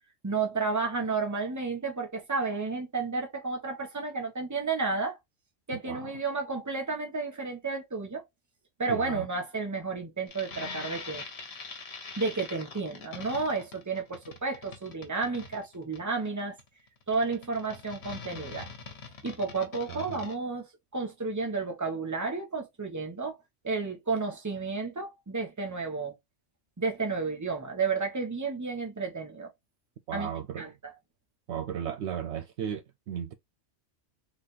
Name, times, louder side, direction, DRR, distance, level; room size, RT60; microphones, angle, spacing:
voice 1, 0.2-5.2 5.7-8.2 8.8-11.2 12.2-16.6 17.1-18.7 19.2-23.4 23.6-26.1 26.8-29.5 30.1-30.3 30.6-30.9, right 4 dB, 15° right, 1.0 m, -32 dB
voice 2, 8.9-9.3 19.9-20.2 30.1-30.7 31.5-33.3, right 8 dB, 70° right, 0.8 m, -35 dB
sound 1, 10.3-20.3, left 4 dB, 60° left, 1.4 m, -43 dB
4.0 x 3.3 x 2.5 m
omnidirectional pair, 1.3 m